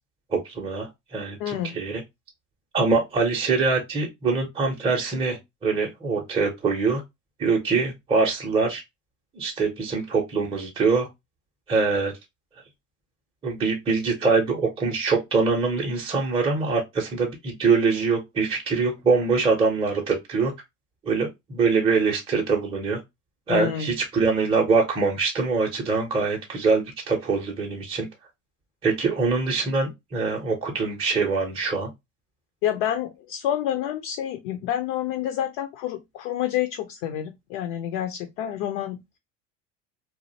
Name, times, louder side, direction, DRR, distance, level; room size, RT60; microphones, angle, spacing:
voice 1, 0.3-2.0 2.7-7.0 7.4-8.8 9.4-11.1 11.7-12.1 13.4-20.5 21.0-23.0 23.5-28.1 28.8-31.9, right 4 dB, 15° right, 0.5 m, -24 dB
voice 2, 1.4-1.8 23.5-23.9 32.6-39.2, left 10 dB, 55° left, 0.5 m, -28 dB
2.4 x 2.1 x 2.6 m
hypercardioid pair, 95°, 38 cm